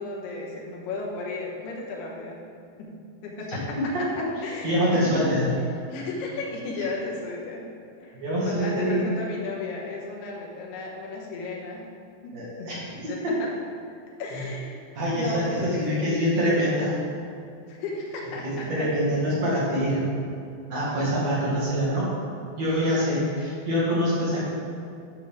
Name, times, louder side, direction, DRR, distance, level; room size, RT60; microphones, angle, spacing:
voice 1, 0.0-2.4 2.8-4.1 4.4-5.2 5.9-7.7 8.0-11.8 12.2-13.5 14.2-14.8 15.2-16.1 17.7-19.1, left 2 dB, 80° left, -2 dB, 3.1 m, -35 dB
voice 2, 3.9-4.3 4.6-5.5 8.1-9.1 12.3-12.8 13.2-13.3 14.3-14.4 14.9-16.9 18.4-20.1 20.7-22.1 22.5-24.4, equal, 50° right, -8 dB, 2.6 m, -25 dB
10.5 x 6.3 x 3.5 m, 2.4 s
omnidirectional pair, 4.7 m